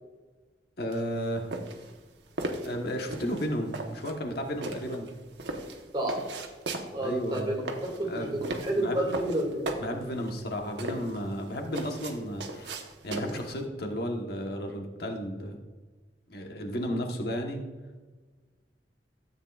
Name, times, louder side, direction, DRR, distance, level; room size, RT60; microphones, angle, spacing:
voice 1, 0.8-1.5 2.6-5.1 7.0-7.5 8.0-8.3 8.8-9.0 9.8-12.8 13.0-15.6 16.3-17.7, equal, 60° left, 2 dB, 1.2 m, -33 dB
sound 1, 0.9-13.6, right 2 dB, 75° right, 1.1 m, -37 dB
voice 2, 6.9-9.6, right 1 dB, 25° right, 0 dB, 2.2 m, -30 dB
13.5 x 8.5 x 2.4 m, 1.3 s
head